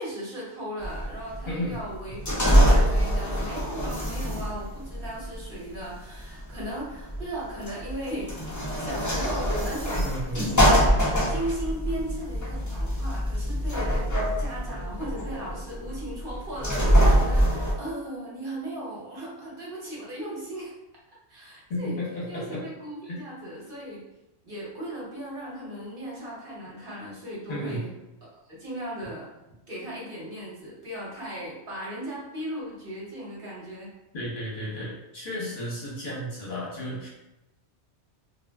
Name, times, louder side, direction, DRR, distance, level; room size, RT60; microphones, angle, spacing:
voice 1, 0.0-14.1 14.4-20.7 21.3-22.0 22.3-24.0 24.4-27.9 28.5-29.3 29.7-33.9, right 1 dB, 55° right, -5 dB, 1.0 m, -37 dB
sound 1, 0.8-17.7, equal, 25° left, 0.4 m, -24 dB
voice 2, 9.9-10.6 21.7-22.6 23.1-23.2 27.5-27.8 34.1-37.1, left 1 dB, 50° left, -6 dB, 0.9 m, -33 dB
2.3 x 2.2 x 3.3 m, 0.95 s
omnidirectional pair, 1.2 m